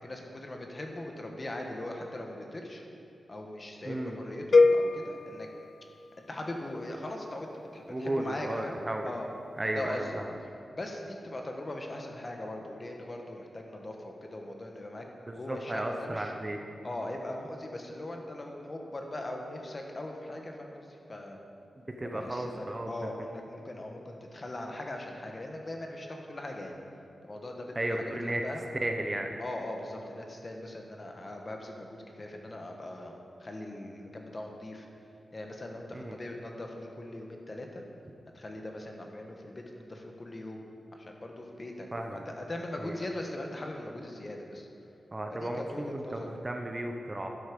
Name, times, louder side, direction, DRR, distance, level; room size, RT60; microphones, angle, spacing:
voice 1, 0.0-2.8 3.3-5.5 6.2-8.8 9.0-9.3 9.7-10.2 10.7-15.1 15.4-16.3 16.8-21.4 22.0-26.8 27.2-28.2 28.4-28.6 29.4-33.1 33.4-34.9 35.3-37.8 38.3-40.6 40.9-44.7 45.3-46.3, left 1 dB, 30° left, 2 dB, 1.3 m, -40 dB
voice 2, 3.8-4.2 7.9-9.1 9.6-10.3 15.3-16.6 21.8-23.1 27.7-28.4 28.8-29.3 35.9-36.2 41.9-42.2 42.8-43.0 45.1-47.3, right 1 dB, 20° right, 3 dB, 0.8 m, -34 dB
sound 1, 4.5-6.6, left 3 dB, 50° left, 0.3 m, -25 dB
11.5 x 8.3 x 5.3 m, 2.6 s
wide cardioid pair, 125°, 0 cm